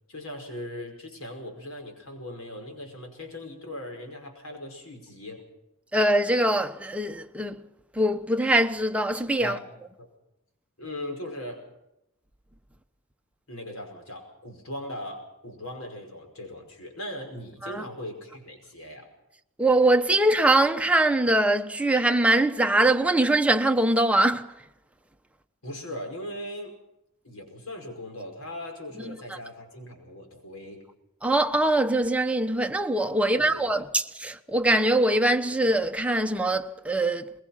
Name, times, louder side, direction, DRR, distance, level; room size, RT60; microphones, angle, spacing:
voice 1, 0.1-5.4 9.4-9.6 10.0-10.1 10.8-11.6 13.5-19.1 25.6-26.8 27.2-30.8 33.2-33.7, left 1 dB, 85° left, 5.4 m, -39 dB
voice 2, 5.9-7.6 8.0-9.6 17.6-17.8 19.6-24.5 31.2-37.3, right 1 dB, 5° right, 1.0 m, -22 dB
22.0 x 21.0 x 5.9 m
head